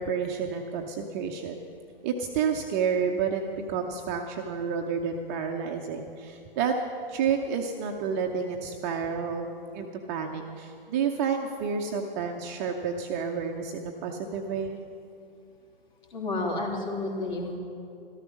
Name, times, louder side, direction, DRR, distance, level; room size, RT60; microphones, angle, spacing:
voice 1, 0.0-1.7 2.0-6.7 7.1-14.8, right 6 dB, 15° right, 3 dB, 0.5 m, -30 dB
voice 2, 16.1-17.6, left 2 dB, 50° left, 1 dB, 3.0 m, -31 dB
13.5 x 12.5 x 6.1 m, 2.5 s
figure-of-eight pair, 125°, 29 cm